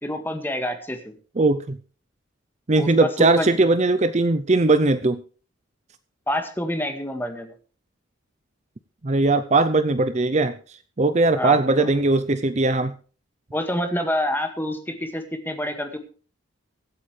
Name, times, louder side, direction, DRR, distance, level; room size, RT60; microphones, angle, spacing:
voice 1, 0.0-1.1 2.8-3.5 6.3-7.5 11.3-11.9 13.5-16.0, left 1 dB, 10° left, 6 dB, 1.8 m, -27 dB
voice 2, 1.4-1.8 2.7-5.2 9.0-10.6 11.0-12.9, right 2 dB, 35° right, 11 dB, 0.6 m, -19 dB
23.5 x 8.4 x 3.3 m, 0.39 s
head